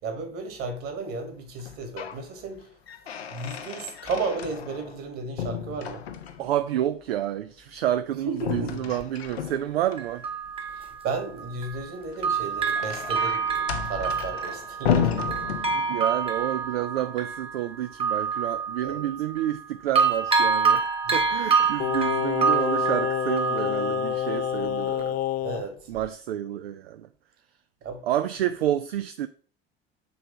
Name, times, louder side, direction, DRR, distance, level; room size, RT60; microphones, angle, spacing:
voice 1, 0.0-2.7 3.3-6.1 8.3-8.7 11.0-15.8 18.8-19.0 21.1-21.2 21.6-21.7 25.4-25.9 27.8-28.0, right 4 dB, 45° right, 1.9 m, -34 dB
sound 1, 1.6-2.2 2.6-5.1 5.4-6.6 8.4-10.0 12.0-16.2, left 8 dB, 75° left, 0.7 m, -32 dB
voice 2, 6.4-10.3 15.7-20.8 21.1-25.2 25.9-27.1 28.0-29.3, right 12 dB, 70° right, 0.5 m, -29 dB
Bell, 9.0-9.1 10.0-11.9 12.2-19.7 20.0-24.6 25.0-25.1, right 5 dB, 20° right, 1.1 m, -27 dB
Singing, 21.8-25.7 26.0-26.1, left 10 dB, 30° left, 0.3 m, -28 dB
7.8 x 3.3 x 5.3 m
figure-of-eight pair, 65°, 31 cm